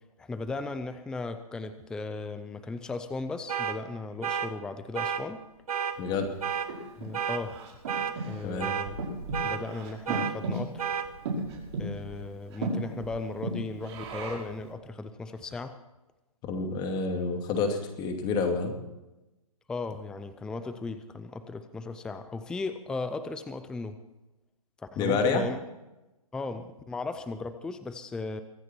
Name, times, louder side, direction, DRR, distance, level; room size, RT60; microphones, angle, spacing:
voice 1, 0.2-5.4 7.0-7.6 8.2-9.0 9.4-10.9 11.8-15.7 19.7-24.0 24.8-25.6 26.3-28.4, left 3 dB, 5° left, 10 dB, 0.5 m, -36 dB
sound 1, 3.5-3.8 4.2-4.5 4.9-5.2 5.7-5.9 6.4-6.7 7.1-7.4 7.9-8.1 8.6-8.9 9.3-9.6 10.1-10.3 10.8-11.1, right 8 dB, 70° right, 1.9 m, -30 dB
Breathing, 6.1-14.6, right 2 dB, 45° right, 5.4 m, -36 dB
voice 2, 16.5-18.8 25.0-25.4, left 4 dB, 20° left, 5 dB, 2.6 m, -28 dB
23.5 x 10.0 x 4.5 m, 0.99 s
hypercardioid pair, 145°, 19 cm